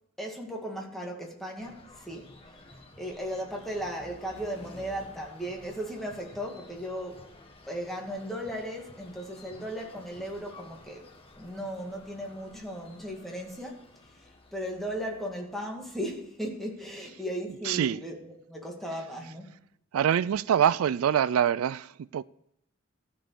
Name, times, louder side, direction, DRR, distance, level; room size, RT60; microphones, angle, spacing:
voice 1, 0.2-2.3 3.0-7.2 7.7-11.1 11.4-13.8 14.5-19.5, equal, ahead, 2.2 m, -36 dB
sound 1, 1.6-17.3, left 2 dB, 25° left, 1.4 m, -52 dB
voice 2, 17.6-18.0 19.9-22.2, right 9 dB, 85° right, 0.3 m, -25 dB
14.5 x 5.3 x 6.8 m
head